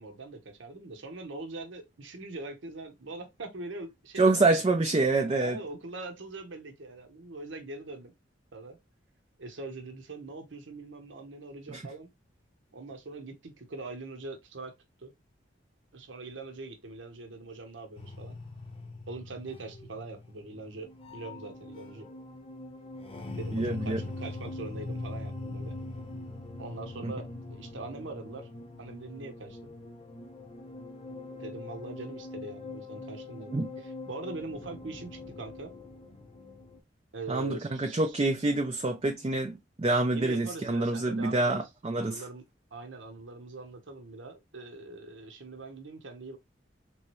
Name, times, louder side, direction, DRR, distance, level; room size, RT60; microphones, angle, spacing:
voice 1, 0.0-4.6 5.2-8.1 8.5-8.8 9.4-12.1 12.7-14.7 15.0-15.1 15.9-18.4 19.1-22.1 23.4-25.8 26.6-28.5 28.8-29.7 31.4-35.7 37.1-38.2 40.1-41.6 42.0-42.4 42.7-46.4, right 3 dB, 80° right, 0.9 m, -42 dB
voice 2, 4.2-5.6 11.7-11.8 23.5-24.0 27.0-27.1 33.5-33.7 37.3-42.2, right 2 dB, 30° right, 0.4 m, -27 dB
sound 1, 18.0-36.8, left 2 dB, 30° left, 0.7 m, -42 dB
3.5 x 3.1 x 3.0 m
head